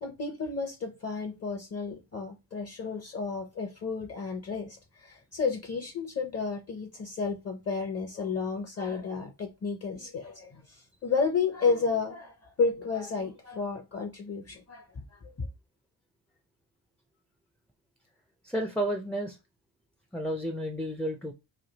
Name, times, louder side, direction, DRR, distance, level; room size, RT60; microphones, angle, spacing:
voice 1, 0.0-15.5, left 4 dB, 35° left, 0.7 m, -32 dB
voice 2, 18.4-19.4 20.1-21.3, right 1 dB, 5° left, 0.4 m, -31 dB
3.2 x 2.7 x 3.9 m
wide cardioid pair, 115°, 43 cm